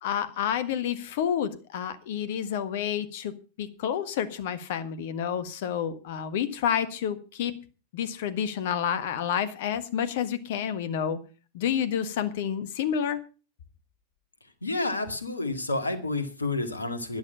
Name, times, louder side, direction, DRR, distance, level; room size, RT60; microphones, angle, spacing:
voice 1, 0.0-3.3 3.6-7.6 7.9-11.2 11.5-13.2, left 8 dB, 55° left, 13 dB, 1.5 m, -29 dB
voice 2, 14.6-17.2, left 2 dB, 80° left, 9 dB, 2.1 m, -30 dB
12.0 x 11.0 x 5.5 m, 0.35 s
figure-of-eight pair, 90°, 0 cm